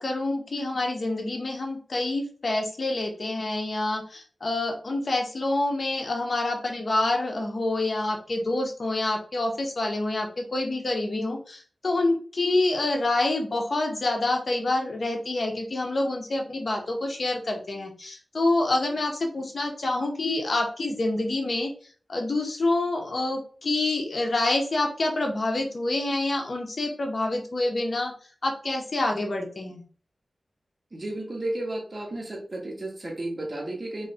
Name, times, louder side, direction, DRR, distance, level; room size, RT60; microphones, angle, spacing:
voice 1, 0.0-21.7 22.1-28.1 28.4-29.8, left 2 dB, 55° left, 2 dB, 1.0 m, -27 dB
voice 2, 30.9-34.1, right 1 dB, 35° right, 0 dB, 1.5 m, -33 dB
3.2 x 3.1 x 4.2 m, 0.42 s
wide cardioid pair, 80°, 0 cm